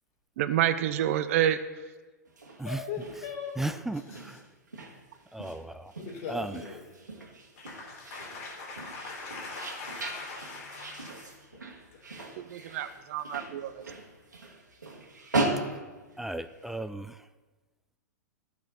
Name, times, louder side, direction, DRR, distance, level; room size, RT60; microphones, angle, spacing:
voice 1, 0.4-1.6 12.4-13.7, right 11 dB, 50° right, 12 dB, 0.7 m, -28 dB
sound 1, 2.3-16.7, right 2 dB, 85° right, 1.9 m, -38 dB
voice 2, 2.6-3.6 3.9-4.4 6.0-7.0 7.6-11.6 11.9-12.3, left 4 dB, 55° left, -1 dB, 3.0 m, -41 dB
voice 3, 3.6-4.4 5.3-5.9 6.3-6.6 16.2-17.2, right 2 dB, 5° right, 11 dB, 0.3 m, -35 dB
14.5 x 6.0 x 4.2 m, 1.3 s
figure-of-eight pair, 105°, 9 cm